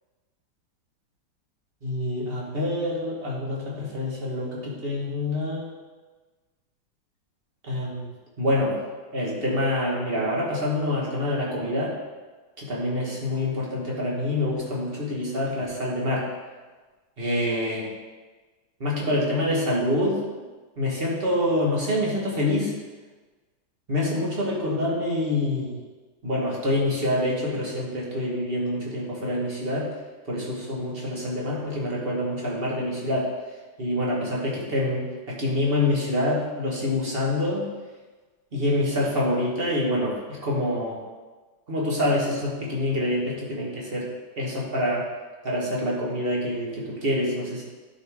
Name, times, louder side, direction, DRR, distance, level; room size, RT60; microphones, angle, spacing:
voice 1, 1.8-5.7 7.6-8.1 8.4-8.8 9.1-11.9 12.6-16.3 17.2-17.9 18.8-20.2 20.8-22.7 23.9-25.8 26.2-29.9 30.3-33.3 33.8-37.7 38.5-41.0 41.7-44.1 44.4-45.0 45.4-47.6, left 1 dB, 30° right, -4 dB, 1.6 m, -26 dB
11.0 x 5.0 x 3.6 m, 1.3 s
omnidirectional pair, 2.2 m